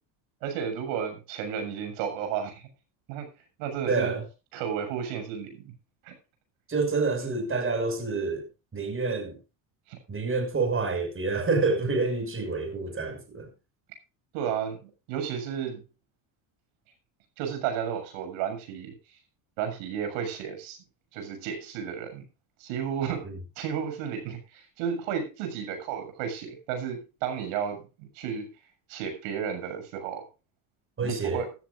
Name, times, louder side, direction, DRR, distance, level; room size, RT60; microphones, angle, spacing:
voice 1, 0.4-2.7 3.1-3.3 3.6-4.1 4.5-5.7 6.0-6.1 9.9-10.0 14.3-15.8 17.4-18.9 19.6-20.8 21.1-22.2 22.6-23.3 23.6-28.5 28.9-30.3 31.0-31.5, right 8 dB, 80° right, 7.3 m, -33 dB
voice 2, 3.9-4.2 6.7-8.5 8.7-9.4 10.1-13.5 23.2-23.3 31.0-31.4, right 3 dB, 25° right, 6.0 m, -28 dB
15.5 x 14.0 x 2.6 m
supercardioid pair, 100°, 47 cm